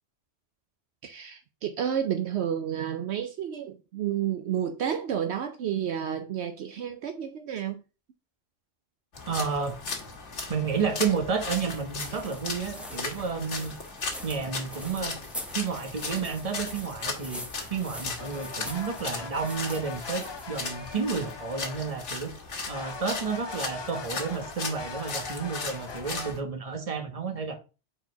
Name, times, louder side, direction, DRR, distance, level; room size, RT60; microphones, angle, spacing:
voice 1, 1.0-7.8, right 9 dB, 70° right, 0.9 m, -31 dB
sound 1, 9.1-26.4, left 4 dB, 80° left, 1.7 m, -37 dB
voice 2, 9.3-9.8 10.5-13.7 14.2-15.2 15.5-17.4 17.7-22.3 22.7-27.6, right 5 dB, 30° right, 1.2 m, -31 dB
sound 2, 11.6-21.3, equal, ahead, 1.0 m, -44 dB
sound 3, 18.2-22.3 22.6-26.3, left 4 dB, 45° left, 0.3 m, -41 dB
4.4 x 4.4 x 5.5 m
omnidirectional pair, 1.2 m